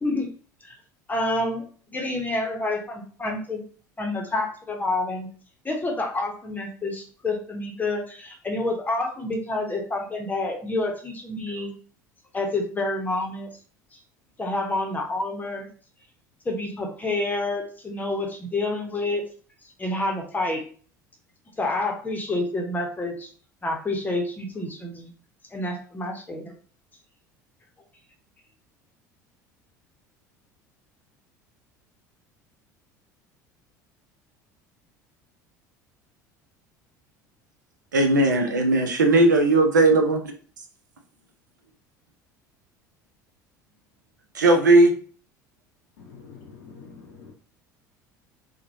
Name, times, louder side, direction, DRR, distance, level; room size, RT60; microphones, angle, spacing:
voice 1, 1.1-3.6 4.0-5.3 5.6-11.7 12.3-13.5 14.4-15.7 16.4-19.2 19.8-20.6 21.6-23.3 23.6-25.1 25.5-26.5, left 2 dB, 15° left, 2 dB, 0.7 m, -28 dB
voice 2, 37.9-40.2 44.3-44.9, right 2 dB, 80° right, 4 dB, 0.5 m, -17 dB
voice 3, 46.0-47.3, left 5 dB, 70° left, -2 dB, 0.6 m, -46 dB
2.9 x 2.1 x 2.6 m, 0.43 s
figure-of-eight pair, 65°, 10 cm